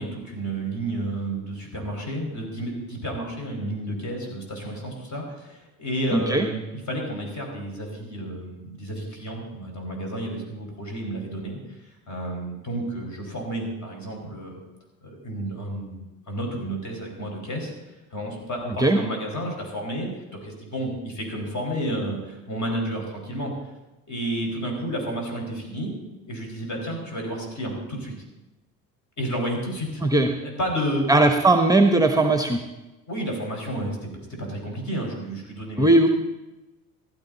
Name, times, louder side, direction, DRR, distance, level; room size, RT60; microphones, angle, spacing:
voice 1, 0.0-11.8 12.1-14.5 15.0-17.7 18.1-23.5 24.1-25.9 26.3-28.1 29.2-30.0 30.4-31.1 33.1-34.1 34.4-35.9, right 1 dB, 40° left, 1 dB, 5.3 m, -31 dB
voice 2, 6.1-6.5 18.8-19.0 30.0-30.3 31.1-32.6 35.8-36.1, right 2 dB, 10° right, 6 dB, 0.9 m, -18 dB
15.5 x 12.0 x 4.0 m, 1.1 s
hypercardioid pair, 60°, 45 cm